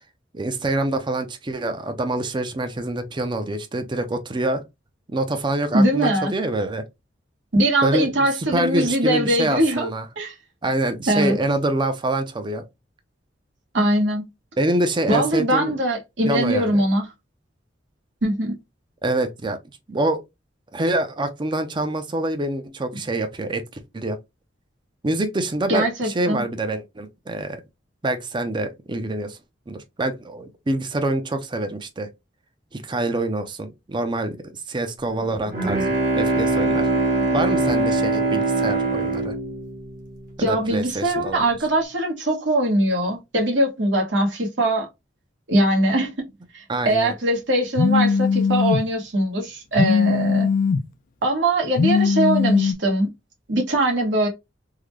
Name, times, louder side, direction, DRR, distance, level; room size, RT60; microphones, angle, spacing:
voice 1, 0.3-4.6 5.1-6.8 7.8-8.3 8.5-10.1 10.6-12.6 14.6-15.7 16.2-16.8 19.0-19.6 19.9-20.2 20.7-23.6 23.9-24.2 25.0-27.6 28.0-29.4 29.7-32.1 32.7-36.9 37.3-39.3 40.5-41.5 46.7-47.1, right 2 dB, 25° right, 0.5 m, -25 dB
voice 2, 5.7-6.3 7.5-9.9 10.2-10.4 11.1-11.4 13.7-14.3 15.1-17.1 18.2-18.5 25.7-26.4 40.4-44.9 45.5-46.3 46.5-50.5 51.2-53.1 53.5-54.3, right 1 dB, 80° right, 1.2 m, -21 dB
Bowed string instrument, 35.2-40.7, right 3 dB, 50° right, 1.1 m, -22 dB
Telephone, 47.8-48.8 49.8-50.8 51.8-52.7, left 5 dB, 45° left, 0.4 m, -19 dB
3.7 x 2.1 x 3.1 m
head